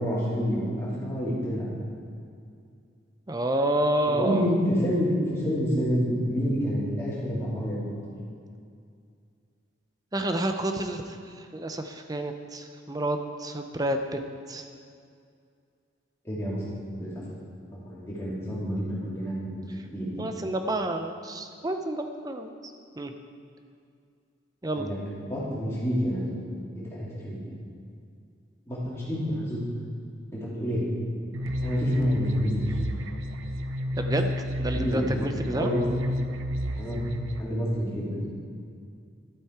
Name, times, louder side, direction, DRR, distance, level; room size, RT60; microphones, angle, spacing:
voice 1, 0.0-1.7 4.1-7.8 16.2-17.1 17.7-20.1 24.8-26.3 26.7-27.4 28.7-29.6 30.3-30.8 31.6-32.6 34.7-35.1 35.5-35.8 36.8-37.0 37.4-38.3, equal, 15° left, -9 dB, 3.0 m, -28 dB
voice 2, 3.3-4.5 10.1-14.2 14.5-14.7 20.2-22.5 23.0-23.1 24.6-24.9 34.0-34.3 34.6-35.7, right 1 dB, 20° right, 6 dB, 0.5 m, -29 dB
sound 1, 31.3-37.4, equal, 90° right, 0.6 m, -30 dB
12.5 x 8.3 x 4.6 m, 2.3 s
head